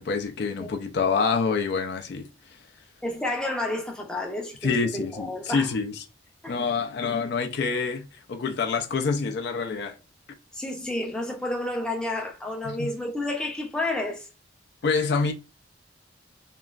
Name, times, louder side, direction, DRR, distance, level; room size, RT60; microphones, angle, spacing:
voice 1, 0.0-2.3 4.6-6.0 6.5-10.0 12.6-12.9 14.8-15.3, left 5 dB, 60° left, 0.4 m, -26 dB
voice 2, 3.0-5.7 6.4-6.6 7.2-7.3 10.5-14.3, left 1 dB, 5° left, 0.5 m, -30 dB
3.0 x 2.3 x 2.3 m
head